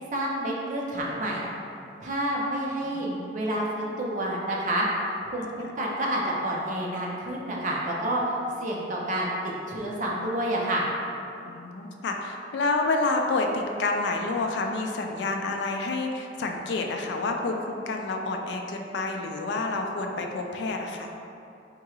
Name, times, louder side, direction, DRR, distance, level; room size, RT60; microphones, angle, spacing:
voice 1, 0.0-1.4 2.0-4.9 5.2-10.8, right 1 dB, 45° right, -3 dB, 0.6 m, -29 dB
voice 2, 2.8-3.4 5.6-5.7 11.4-21.1, left 3 dB, 70° left, 3 dB, 0.3 m, -29 dB
4.5 x 2.4 x 3.0 m, 2.8 s
head